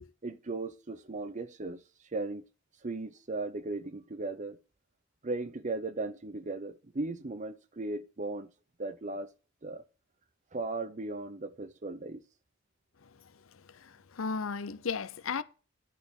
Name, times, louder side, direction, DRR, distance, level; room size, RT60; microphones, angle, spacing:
voice 1, 0.2-1.8 2.1-2.5 2.8-4.6 5.2-8.5 8.8-9.3 9.6-9.8 10.5-12.2, right 3 dB, 35° right, 0.8 m, -37 dB
voice 2, 13.5-15.4, left 5 dB, 85° left, 0.7 m, -35 dB
11.0 x 4.3 x 7.0 m
head